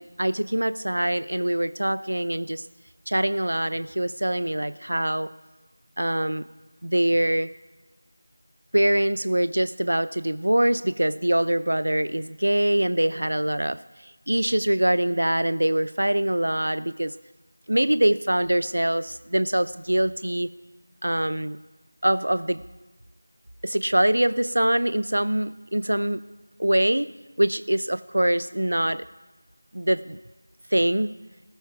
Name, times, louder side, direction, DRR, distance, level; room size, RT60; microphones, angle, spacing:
voice 1, 0.0-2.7 3.1-5.3 6.0-6.5 6.8-7.5 8.7-17.2 17.7-20.5 21.0-21.6 22.0-22.6 23.6-26.2 26.6-27.1 27.4-29.0 29.7-30.2 30.7-31.1, right 1 dB, 75° right, 15 dB, 0.5 m, -24 dB
20.0 x 13.5 x 4.7 m, 1.2 s
figure-of-eight pair, 175°, 0 cm